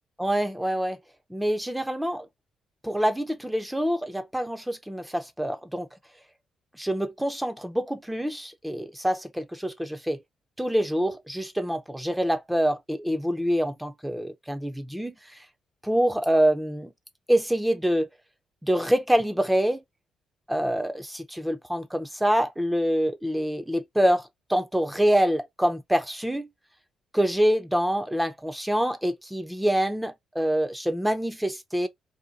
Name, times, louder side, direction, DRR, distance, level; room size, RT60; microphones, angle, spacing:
voice 1, 0.2-1.0 1.3-2.3 2.8-5.9 6.8-10.2 10.6-15.1 15.8-16.9 17.3-18.1 18.6-19.8 20.5-26.5 27.1-31.9, equal, 5° right, 0.4 m, -26 dB
2.7 x 2.2 x 3.8 m
cardioid pair, 75°, 0 cm